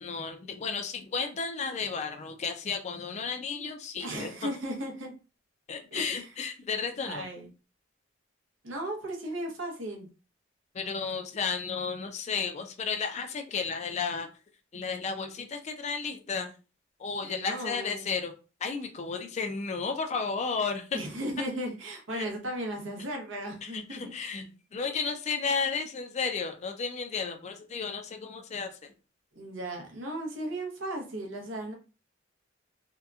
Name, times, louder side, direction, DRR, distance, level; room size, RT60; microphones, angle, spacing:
voice 1, 0.0-4.5 5.7-7.3 10.7-14.3 14.7-16.5 17.0-18.3 18.6-21.0 22.1-22.3 23.6-28.9, left 5 dB, 35° left, 6 dB, 0.4 m, -33 dB
voice 2, 4.0-5.2 5.9-6.3 7.0-7.5 8.6-10.1 17.2-18.1 20.9-24.0 29.3-31.7, right 1 dB, 80° right, 2 dB, 0.7 m, -36 dB
2.7 x 2.2 x 2.3 m, 0.34 s
head